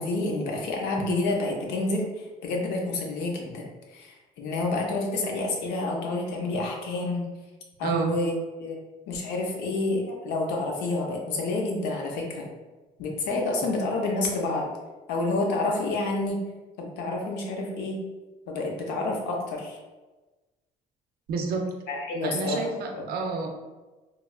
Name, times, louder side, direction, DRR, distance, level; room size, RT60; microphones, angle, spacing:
voice 1, 0.0-7.3 7.8-8.8 9.1-12.5 13.0-14.7 15.1-16.4 16.8-18.0 18.5-19.8 21.9-23.1, left 2 dB, 90° left, 0 dB, 0.6 m, -29 dB
voice 2, 7.8-8.1 21.3-21.7 22.2-23.5, right 4 dB, 65° right, 3 dB, 0.5 m, -29 dB
3.0 x 2.3 x 2.3 m, 1.2 s
cardioid pair, 110°, 17 cm